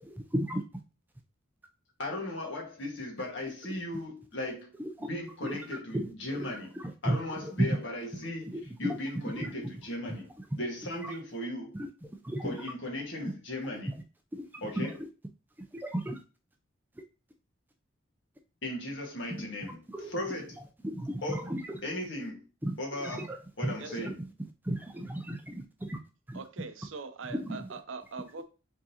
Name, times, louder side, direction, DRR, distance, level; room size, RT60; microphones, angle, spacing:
voice 1, 0.0-0.6 4.8-5.1 5.4-5.6 6.0-7.8 8.5-9.0 9.4-9.7 10.1-10.2 11.0-11.2 11.7-12.7 14.3-14.5 14.8-15.0 15.7-16.2 19.9-20.1 20.8-21.7 22.6-23.4 24.0-24.1 24.6-26.0 26.3-26.4 27.3-27.6, right 1 dB, 10° right, 0.4 m, -34 dB
voice 2, 2.0-4.7 5.0-6.7 7.0-10.3 10.6-11.8 12.4-13.9 14.6-14.9 18.6-19.8 20.1-20.6 21.2-21.5 21.8-22.5 22.8-24.1, left 1 dB, 65° left, 1.6 m, -37 dB
voice 3, 26.3-28.4, right 4 dB, 75° right, 0.6 m, -42 dB
4.8 x 3.8 x 2.8 m
head